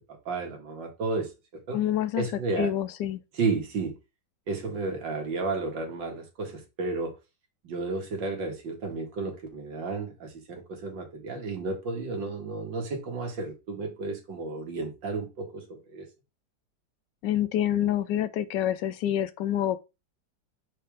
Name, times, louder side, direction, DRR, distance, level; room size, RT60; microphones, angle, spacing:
voice 1, 0.1-1.3 1.7-1.8 2.2-2.7 3.3-4.0 4.5-7.1 7.6-16.1, right 3 dB, 85° right, 2.4 m, -32 dB
voice 2, 1.7-2.3 2.6-3.2 17.2-19.8, left 11 dB, 80° left, 1.3 m, -27 dB
6.6 x 4.6 x 3.4 m
omnidirectional pair, 1.9 m